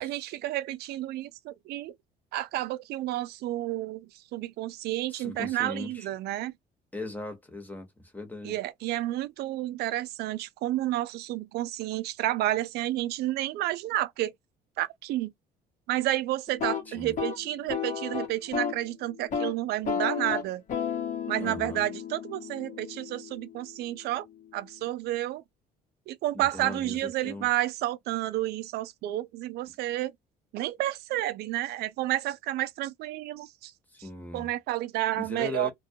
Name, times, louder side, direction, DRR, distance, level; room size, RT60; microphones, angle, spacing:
voice 1, 0.0-1.9 2.3-6.5 8.4-14.3 14.8-15.3 15.9-20.6 21.3-24.3 24.5-25.4 26.1-30.1 30.5-33.7 34.0-34.1 34.3-35.7, right 15 dB, 75° right, 0.4 m, -30 dB
voice 2, 5.1-6.1 6.9-7.9 8.1-8.5 16.9-17.1 21.4-21.8 26.3-27.0 27.2-27.5 33.9-34.5 35.2-35.7, left 2 dB, 10° left, 1.0 m, -38 dB
sound 1, 16.5-18.8 19.2-19.5 19.8-23.7, left 7 dB, 50° left, 1.0 m, -33 dB
2.3 x 2.1 x 2.7 m
cardioid pair, 110°, 17 cm